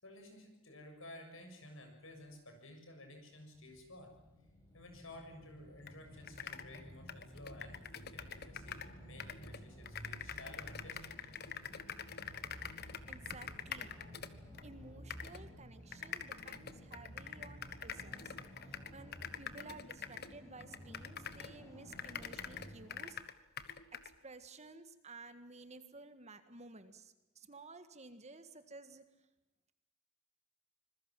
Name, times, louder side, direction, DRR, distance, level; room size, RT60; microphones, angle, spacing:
voice 1, 0.0-4.1 4.7-11.2, left 1 dB, 70° left, 4 dB, 6.9 m, -54 dB
sound 1, 3.5-23.0, equal, 15° left, 6.4 m, -54 dB
sound 2, 5.9-6.0 6.2-8.9 9.2-14.7 15.1-15.4 15.9-21.6 21.9-24.1, left 8 dB, 50° left, 1.3 m, -46 dB
voice 2, 13.1-14.0 14.6-18.3 18.7-23.2 24.0-29.0, right 3 dB, 30° right, 10 dB, 1.7 m, -54 dB
26.0 x 21.0 x 7.6 m, 0.96 s
head